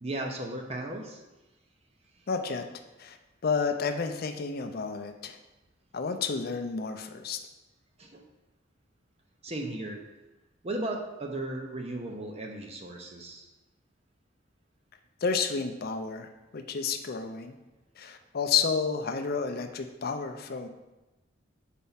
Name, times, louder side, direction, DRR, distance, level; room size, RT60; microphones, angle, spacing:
voice 1, 0.0-1.2 8.0-8.2 9.4-10.0 10.6-13.5, right 2 dB, 35° right, 2 dB, 0.6 m, -36 dB
voice 2, 2.3-2.6 3.0-3.2 3.4-5.4 5.9-7.4 15.2-17.5 18.0-20.7, left 5 dB, 50° left, 6 dB, 0.5 m, -31 dB
4.5 x 4.2 x 5.6 m, 1.1 s
head